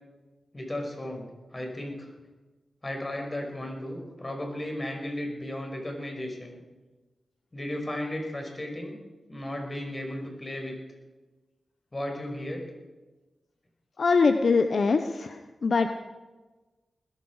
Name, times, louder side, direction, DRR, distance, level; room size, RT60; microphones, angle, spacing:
voice 1, 0.5-2.1 2.8-6.6 7.5-9.0 9.3-10.8 11.9-12.7, left 1 dB, 30° left, 2 dB, 5.6 m, -35 dB
voice 2, 14.0-15.9, left 4 dB, 65° left, 7 dB, 0.9 m, -23 dB
20.5 x 14.5 x 4.9 m, 1.2 s
cardioid pair, 50°, 0 cm